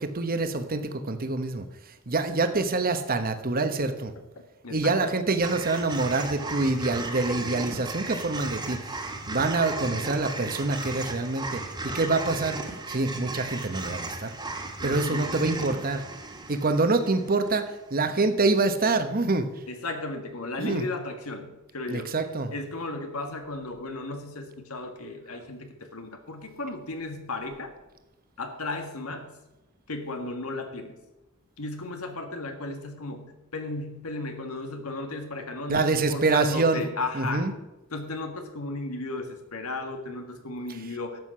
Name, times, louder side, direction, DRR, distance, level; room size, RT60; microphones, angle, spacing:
voice 1, 0.0-1.7 2.1-4.1 4.7-8.8 9.3-11.6 11.9-12.6 12.9-14.3 14.8-16.0 16.5-19.4 20.6-20.8 21.9-22.5 35.7-36.8 37.1-37.5, right 3 dB, 45° right, 8 dB, 1.1 m, -26 dB
voice 2, 4.6-5.2 14.8-15.4 19.7-22.1 22.5-27.7 28.4-29.4 29.9-31.0 31.6-37.5 37.9-41.2, left 2 dB, 85° left, 6 dB, 1.8 m, -35 dB
sound 1, 5.4-17.7, right 2 dB, 20° right, 1.7 m, -36 dB
12.5 x 8.1 x 5.6 m, 0.99 s
head